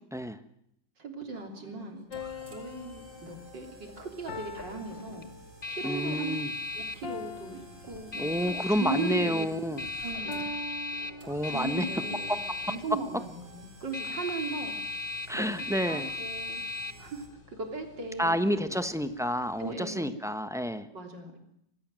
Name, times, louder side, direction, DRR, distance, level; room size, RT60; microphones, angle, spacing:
voice 1, 1.0-2.0 2.4-5.3 5.7-6.3 6.7-9.5 10.0-10.4 11.5-12.4 12.7-14.7 15.3-16.6 17.0-18.8 19.6-20.2 20.9-21.4, right 3 dB, 70° right, 4 dB, 4.1 m, -38 dB
sound 1, 1.3-17.3, right 2 dB, 90° right, 5.3 m, -53 dB
sound 2, 2.1-5.8 7.0-8.6 10.3-11.8, left 3 dB, 75° left, 2.3 m, -43 dB
sound 3, 2.9-19.7, left 3 dB, 30° left, 1.3 m, -38 dB
voice 2, 5.8-6.5 8.2-9.8 11.3-11.8 15.3-16.1 18.2-20.9, equal, ahead, 10 dB, 0.8 m, -29 dB
25.0 x 18.5 x 7.7 m, 0.76 s
omnidirectional pair, 2.0 m